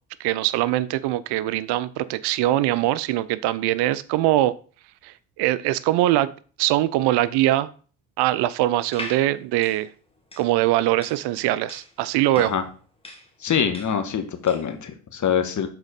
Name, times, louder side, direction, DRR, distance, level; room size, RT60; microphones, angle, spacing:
voice 1, 0.2-4.6 5.0-6.3 6.6-7.7 8.2-9.9 10.4-12.5, right 15 dB, 70° right, 17 dB, 0.5 m, -22 dB
sound 1, 8.8-14.8, left 1 dB, 15° left, 1.8 m, -41 dB
voice 2, 13.4-15.7, left 8 dB, 45° left, 7 dB, 1.3 m, -24 dB
6.8 x 4.1 x 4.2 m, 0.40 s
supercardioid pair, 65°, 42 cm